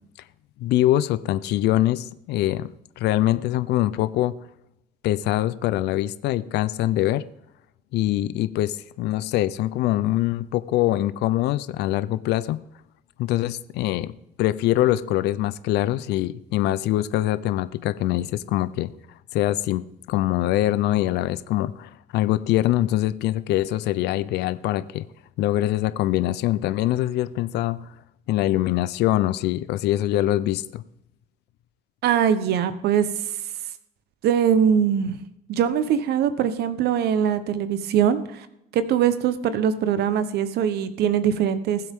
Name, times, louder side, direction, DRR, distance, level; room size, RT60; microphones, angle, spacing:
voice 1, 0.6-2.7 3.0-4.3 5.0-7.2 7.9-12.6 13.2-14.1 14.4-18.9 19.3-19.8 20.1-25.1 25.4-27.9 28.3-30.8, left 14 dB, 80° left, 15 dB, 0.6 m, -23 dB
voice 2, 32.0-33.1 34.2-35.2 35.5-38.5 38.7-41.8, right 8 dB, 75° right, 12 dB, 1.0 m, -22 dB
20.5 x 7.8 x 3.6 m, 0.82 s
cardioid pair, 110°, 17 cm